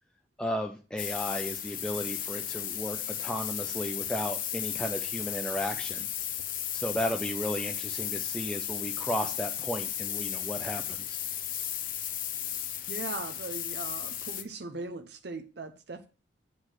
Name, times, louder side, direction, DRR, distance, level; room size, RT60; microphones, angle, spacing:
voice 1, 0.4-6.1 6.7-11.2, equal, 5° left, 0.5 m, -34 dB
sound 1, 1.0-14.4, left 11 dB, 50° left, 0.8 m, -35 dB
voice 2, 12.9-16.1, right 3 dB, 65° right, 0.7 m, -39 dB
8.2 x 4.1 x 6.3 m
head